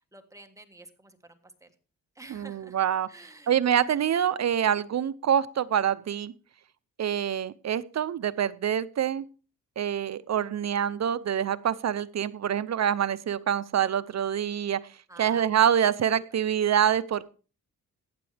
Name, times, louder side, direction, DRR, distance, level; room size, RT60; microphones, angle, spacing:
voice 1, 0.1-1.7 2.1-2.8 3.1-3.6 15.1-15.5, right 2 dB, 10° right, 6 dB, 1.5 m, -50 dB
voice 2, 2.3-3.1 3.5-6.3 7.0-9.2 9.8-14.8 15.2-17.3, right 9 dB, 50° right, 16 dB, 0.6 m, -26 dB
15.0 x 10.0 x 3.4 m, 0.36 s
cardioid pair, 115°, 33 cm